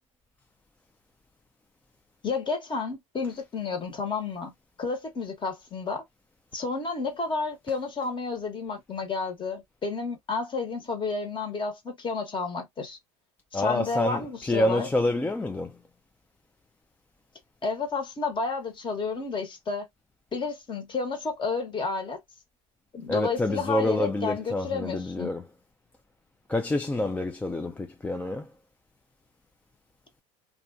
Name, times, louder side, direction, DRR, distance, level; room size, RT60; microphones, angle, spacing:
voice 1, 2.2-4.5 4.8-6.0 6.5-13.0 13.5-14.9 17.6-19.9 20.3-22.2 22.9-25.3, left 4 dB, 25° left, 1.0 m, -31 dB
voice 2, 13.5-15.8 23.1-25.5 26.5-28.5, left 1 dB, 10° left, 0.3 m, -27 dB
2.4 x 2.4 x 2.4 m
hypercardioid pair, 85°, 18 cm